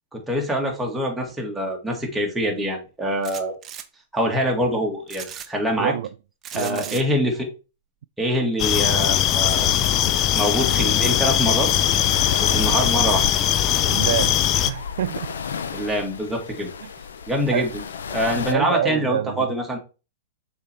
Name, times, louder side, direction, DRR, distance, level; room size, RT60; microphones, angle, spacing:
voice 1, 0.1-3.5 4.1-5.9 6.5-7.5 8.2-9.7 10.3-11.7 12.4-13.3 15.7-16.7 17.3-17.7 18.1-19.8, equal, 5° right, 2.0 m, -24 dB
sound 1, 3.2-3.9 5.1-5.5 6.4-7.0, right 8 dB, 25° right, 0.7 m, -36 dB
voice 2, 5.8-6.1 6.5-7.1 13.9-14.4 14.7-15.3 16.8-16.9 17.5-17.7 18.5-19.5, right 11 dB, 70° right, 0.3 m, -27 dB
sound 2, 8.6-14.7, left 11 dB, 35° left, 0.6 m, -20 dB
sound 3, 9.4-18.5, left 6 dB, 85° left, 0.7 m, -34 dB
6.5 x 4.2 x 3.5 m
hypercardioid pair, 125°, 0 cm